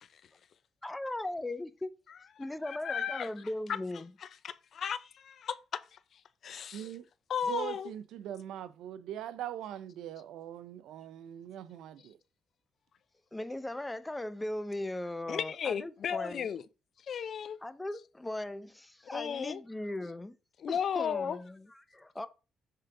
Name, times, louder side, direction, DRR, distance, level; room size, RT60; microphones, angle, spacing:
voice 1, 0.8-2.0 2.4-4.1 13.3-16.5 17.6-20.4 20.7-22.3, left 1 dB, 10° left, 0.6 m, -38 dB
voice 2, 2.4-3.3 4.4-6.9 7.3-7.9 15.3-16.6 17.1-17.6 19.1-19.6 20.6-21.4, left 8 dB, 60° left, 0.5 m, -35 dB
voice 3, 6.7-7.0 7.4-12.2, right 11 dB, 85° right, 0.5 m, -41 dB
6.7 x 3.8 x 3.8 m
cardioid pair, 90°, 0 cm